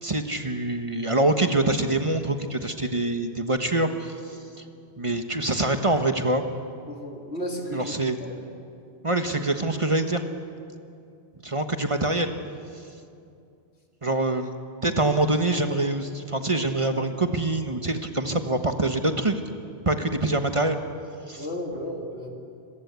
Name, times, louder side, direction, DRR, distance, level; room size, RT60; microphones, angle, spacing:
voice 1, 0.0-4.6 5.0-6.5 7.7-8.2 9.0-10.2 11.4-12.3 14.0-14.5 14.8-19.4 19.8-20.8 21.3-21.5, right 2 dB, 30° right, 7 dB, 1.4 m, -25 dB
voice 2, 6.9-7.9 8.2-8.4 14.8-15.0 20.0-20.1 21.4-22.3, equal, 90° left, 1 dB, 3.4 m, -34 dB
25.5 x 23.0 x 8.3 m, 2.5 s
omnidirectional pair, 1.1 m